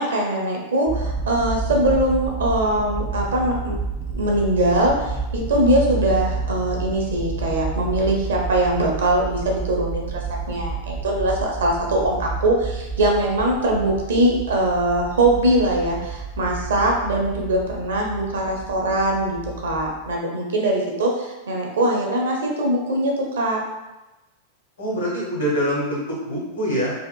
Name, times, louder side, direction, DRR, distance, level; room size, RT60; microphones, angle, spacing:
voice 1, 0.0-3.8 4.1-23.6, right 1 dB, 65° right, 0 dB, 0.6 m, -22 dB
sound 1, 0.9-20.2, right 4 dB, 10° right, 0.4 m, -30 dB
voice 2, 24.8-26.9, equal, 70° left, -5 dB, 1.1 m, -24 dB
2.7 x 2.4 x 2.2 m, 1.0 s
figure-of-eight pair, 90°, 0 cm